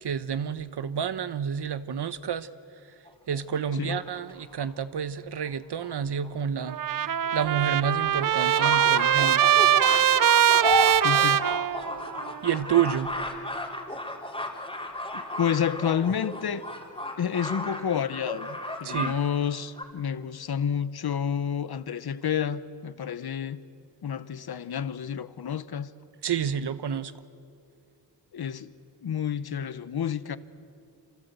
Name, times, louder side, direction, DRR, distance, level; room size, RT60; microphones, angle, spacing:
voice 1, 0.0-2.5 3.3-6.8 7.0-9.5 12.4-13.1 18.8-19.2 26.2-27.1, right 8 dB, 65° right, 1.0 m, -29 dB
sound 1, 3.0-4.6 5.4-5.5 5.8-5.9 6.2-6.3 6.7-6.8 7.3-19.1 19.4-19.8, left 1 dB, 15° left, 3.4 m, -33 dB
Trumpet, 6.7-12.3, right 10 dB, 50° right, 0.6 m, -22 dB
voice 2, 11.0-11.5 15.1-16.6 17.2-23.6 24.0-25.9 28.3-28.7 29.0-30.4, left 8 dB, 60° left, 1.0 m, -29 dB
27.0 x 26.5 x 8.1 m
wide cardioid pair, 105°, 43 cm